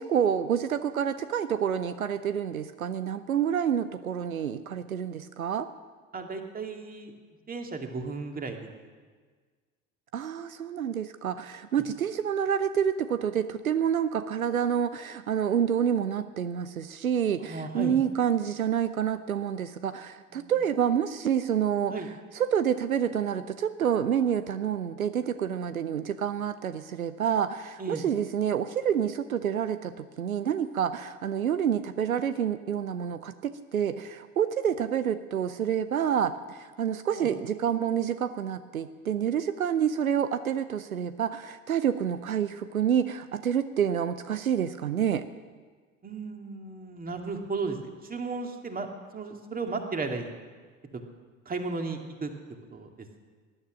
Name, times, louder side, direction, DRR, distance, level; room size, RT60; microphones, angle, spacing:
voice 1, 0.0-5.7 10.1-21.9 22.3-45.2, right 8 dB, 85° right, 13 dB, 0.7 m, -28 dB
voice 2, 6.1-7.1 7.5-8.7 17.4-18.0 20.3-20.5 21.9-22.1 27.8-28.1 37.2-37.3 46.0-48.9 49.1-50.3 50.9-51.0 51.5-52.3 52.7-53.1, right 3 dB, 20° right, 4 dB, 2.2 m, -35 dB
19.5 x 12.0 x 6.3 m, 1.5 s
figure-of-eight pair, 70°, 41 cm